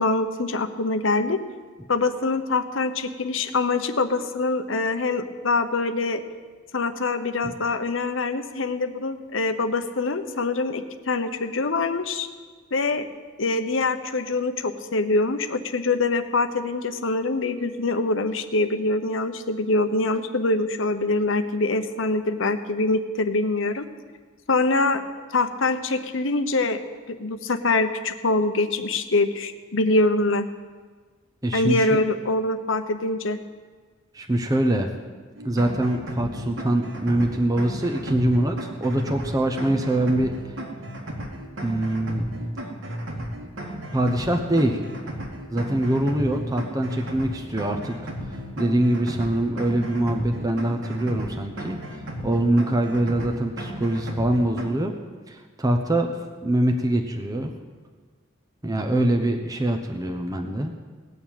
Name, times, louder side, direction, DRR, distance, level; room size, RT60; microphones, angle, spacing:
voice 1, 0.0-1.4 1.9-6.2 6.7-12.3 12.7-13.1 13.4-23.9 24.5-25.0 25.3-26.8 27.1-30.5 31.5-33.4, left 3 dB, 75° left, 9 dB, 1.0 m, -24 dB
voice 2, 31.4-32.0 34.1-34.9 35.4-40.3 41.6-42.3 43.9-44.8 45.5-47.9 48.3-51.8 52.2-54.9 55.3-57.5 58.6-60.8, right 1 dB, 20° right, 3 dB, 0.9 m, -24 dB
sound 1, 35.4-54.7, equal, 75° right, 2.2 m, -34 dB
18.5 x 6.8 x 9.1 m, 1.5 s
head